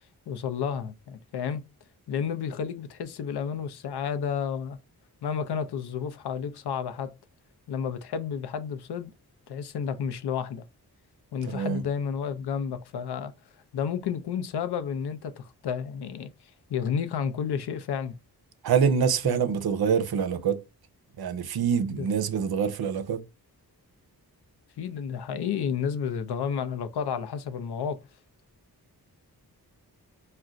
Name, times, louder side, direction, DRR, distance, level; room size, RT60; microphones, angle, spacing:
voice 1, 0.3-1.6 2.1-4.8 5.2-7.1 7.7-9.1 9.5-10.6 11.3-13.3 13.7-16.3 16.7-18.2 19.2-19.4 21.9-22.1 24.8-28.0, left 7 dB, 85° left, 0.5 m, -31 dB
voice 2, 11.5-11.8 18.6-20.6 21.2-23.2, right 7 dB, 70° right, 0.6 m, -25 dB
2.4 x 2.2 x 3.8 m
wide cardioid pair, 85°, 38 cm